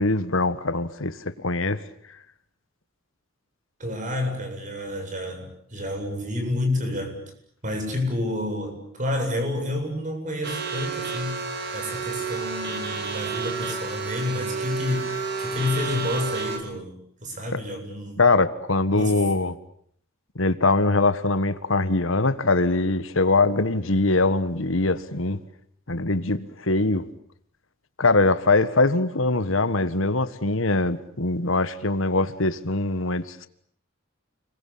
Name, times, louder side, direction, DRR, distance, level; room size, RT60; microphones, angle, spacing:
voice 1, 0.0-1.8 17.5-17.6 18.2-19.5 20.3-25.4 25.9-27.0 28.0-33.5, left 3 dB, 65° left, 1.6 m, -22 dB
voice 2, 3.8-7.2 7.6-11.4 11.7-15.1 15.4-16.9 17.2-18.2 18.9-19.2, left 1 dB, 40° right, 7.7 m, -29 dB
sound 1, 10.4-16.6, right 4 dB, 55° right, 4.9 m, -30 dB
30.0 x 22.5 x 8.6 m
head